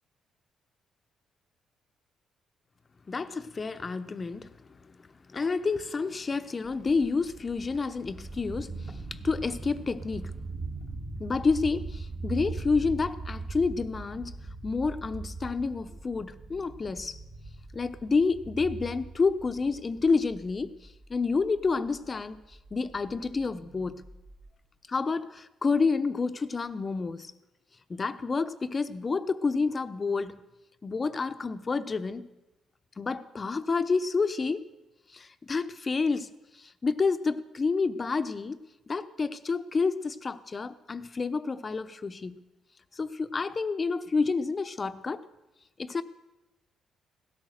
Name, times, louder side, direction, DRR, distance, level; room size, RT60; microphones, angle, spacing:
voice 1, 3.1-4.5 4.9-5.0 5.3-10.3 11.2-14.4 14.6-17.2 17.7-20.8 21.1-24.0 24.9-27.3 27.9-30.4 30.8-32.3 33.0-34.7 35.1-38.6 38.9-42.4 42.9-45.3 45.8-46.0, left 4 dB, 35° left, 0.9 m, -29 dB
sound 1, 6.6-24.5, right 3 dB, 40° right, 2.3 m, -41 dB
16.5 x 13.0 x 6.6 m
cardioid pair, 90°, 0 cm